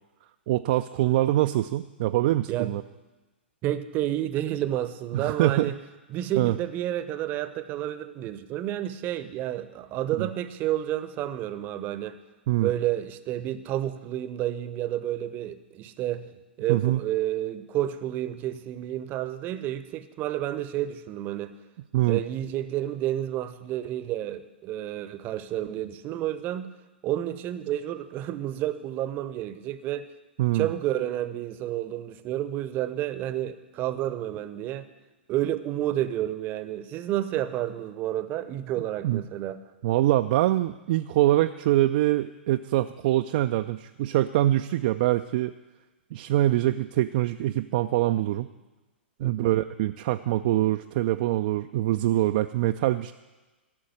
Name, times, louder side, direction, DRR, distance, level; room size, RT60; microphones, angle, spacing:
voice 1, 0.5-2.8 5.1-5.7 6.4-6.5 10.2-10.3 12.5-12.7 16.7-17.0 21.9-22.2 30.4-30.7 39.0-39.2 39.8-45.5 46.1-48.5 49.2-53.1, right 15 dB, 45° right, 8 dB, 0.4 m, -24 dB
voice 2, 3.6-5.7 6.1-12.2 12.6-16.3 16.6-21.5 22.0-26.7 27.0-30.1 30.5-34.9 35.3-39.6 49.2-49.6, right 12 dB, 30° right, 13 dB, 0.8 m, -30 dB
13.5 x 6.4 x 9.7 m, 1.2 s
figure-of-eight pair, 105°, 6 cm